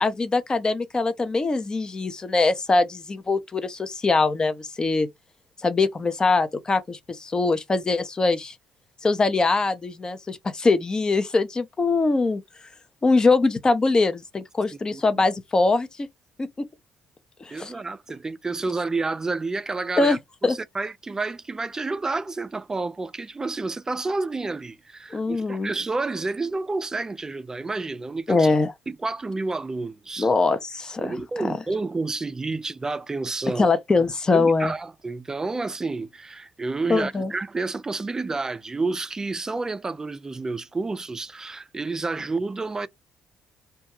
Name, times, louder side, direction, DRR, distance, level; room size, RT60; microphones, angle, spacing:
voice 1, 0.0-5.1 5.6-8.5 9.0-12.4 13.0-15.9 16.4-16.5 17.4-17.7 20.0-20.2 20.4-20.6 25.1-25.7 28.3-28.7 30.2-31.5 33.6-34.7 36.9-37.3, left 3 dB, 30° left, 0.6 m, -22 dB
voice 2, 14.9-15.2 17.5-28.5 28.9-30.3 31.0-33.7 34.3-42.9, right 3 dB, 25° right, 0.3 m, -30 dB
2.3 x 2.2 x 2.8 m
supercardioid pair, 65°, 3 cm